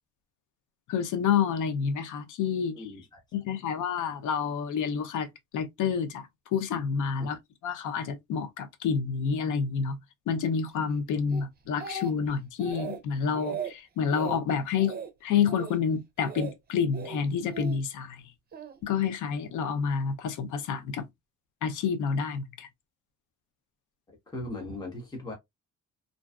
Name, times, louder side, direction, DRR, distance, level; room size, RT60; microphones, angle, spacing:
voice 1, 0.9-2.9 3.3-5.3 5.5-7.4 7.6-10.0 10.3-15.0 15.2-18.2 18.8-21.0 21.6-22.7, left 6 dB, 80° left, 0.6 m, -29 dB
voice 2, 2.7-3.2 24.3-25.3, left 2 dB, 15° left, 0.9 m, -38 dB
Speech, 11.3-12.3 12.6-13.0 13.3-13.7 14.1-14.4 14.8-15.1 15.4-15.8 16.2-16.5 16.9-17.8 18.5-18.8, right 6 dB, 30° right, 0.6 m, -37 dB
2.5 x 2.2 x 2.2 m
cardioid pair, 90°, 30 cm